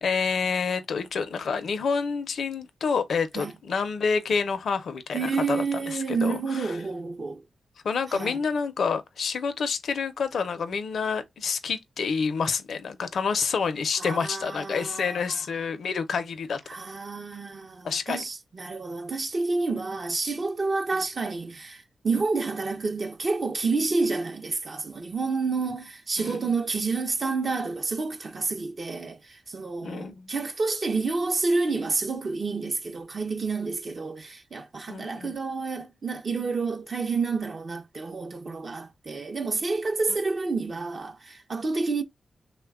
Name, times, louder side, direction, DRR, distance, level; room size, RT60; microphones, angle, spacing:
voice 1, 0.0-6.7 7.8-16.6 17.8-18.2 26.2-26.4 29.8-30.3 34.9-35.3, left 5 dB, 80° left, 0.5 m, -28 dB
voice 2, 5.1-7.4 8.1-8.4 14.0-15.4 16.7-42.0, right 4 dB, 50° right, 0.5 m, -29 dB
3.1 x 2.2 x 3.4 m
cardioid pair, 75°, 0 cm